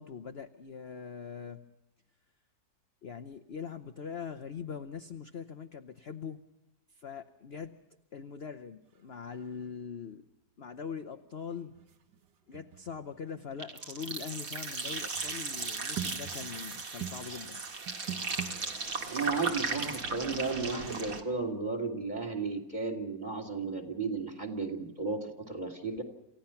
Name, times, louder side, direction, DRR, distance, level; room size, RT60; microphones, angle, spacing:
voice 1, 0.0-1.6 3.0-6.4 6.9-7.8 8.1-10.2 10.6-11.7 12.5-17.6, left 6 dB, 50° left, 7 dB, 0.8 m, -42 dB
sound 1, 9.0-9.1 9.2-9.7 11.6-18.9, right 9 dB, 75° right, 1.8 m, -45 dB
sound 2, 13.6-21.2, right 4 dB, 50° right, 2.3 m, -36 dB
voice 2, 19.1-26.0, right 4 dB, 25° right, 6 dB, 2.7 m, -34 dB
28.0 x 16.0 x 5.8 m, 0.91 s
omnidirectional pair, 1.9 m